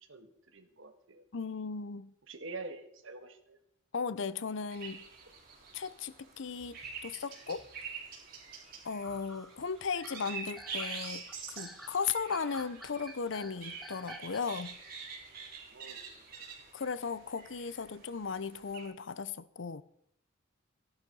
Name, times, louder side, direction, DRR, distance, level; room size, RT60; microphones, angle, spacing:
voice 1, 0.1-1.2 2.3-3.6 15.7-16.2, right 3 dB, 75° right, 1.7 m, -46 dB
voice 2, 1.3-2.1 3.9-5.1 5.7-7.6 8.8-14.8 16.7-19.8, left 5 dB, 65° left, 0.6 m, -36 dB
sound 1, 4.7-18.9, right 5 dB, 45° right, 4.0 m, -46 dB
sound 2, 6.6-14.8 15.1-15.4 16.1-16.2 16.6-16.9, equal, ahead, 1.1 m, -52 dB
14.5 x 11.0 x 5.4 m
head